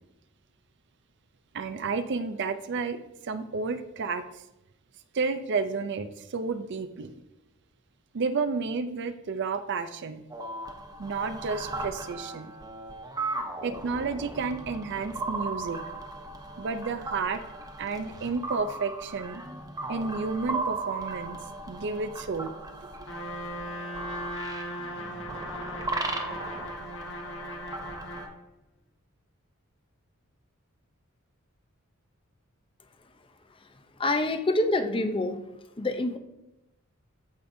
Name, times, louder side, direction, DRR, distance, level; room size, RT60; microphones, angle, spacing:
voice 1, 1.5-3.0 3.2-4.4 5.1-7.1 8.1-10.2 11.0-12.5 13.6-15.8 16.6-17.4 17.8-19.4 19.9-21.4 21.7-22.5, right 4 dB, 55° right, 10 dB, 0.5 m, -31 dB
sound 1, 10.3-28.3, right 2 dB, 20° right, 0.9 m, -37 dB
Trumpet, 23.1-28.3, equal, 65° left, 1.4 m, -38 dB
voice 2, 33.6-35.5 35.8-36.2, left 2 dB, 25° left, 8 dB, 0.6 m, -27 dB
14.5 x 5.1 x 2.7 m, 0.92 s
head